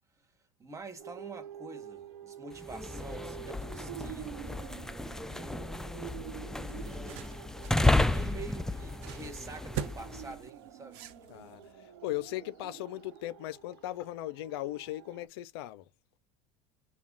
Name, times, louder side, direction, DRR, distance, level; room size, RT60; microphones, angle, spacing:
voice 1, 0.6-4.6 5.1-6.0 6.7-11.0 11.4-11.5, right 4 dB, 25° right, 1.3 m, -47 dB
sound 1, 1.0-15.3, right 10 dB, 85° right, 1.0 m, -48 dB
sound 2, 2.6-10.4, left 2 dB, 5° left, 0.3 m, -32 dB
sound 3, 6.5-11.7, right 9 dB, 65° right, 0.7 m, -44 dB
voice 2, 11.3-15.9, left 15 dB, 80° left, 0.4 m, -38 dB
3.5 x 2.2 x 3.9 m
supercardioid pair, 95°, 13 cm